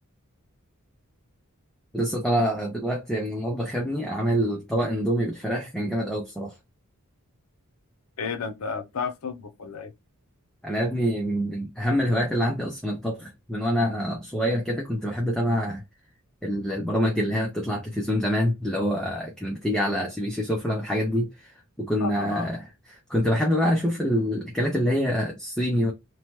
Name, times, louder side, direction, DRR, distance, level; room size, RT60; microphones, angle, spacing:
voice 1, 1.9-6.5 10.6-15.8 16.4-25.9, equal, 5° left, 0.4 m, -26 dB
voice 2, 8.2-9.9 22.0-22.5, left 5 dB, 70° left, 0.6 m, -32 dB
3.0 x 2.1 x 2.9 m
head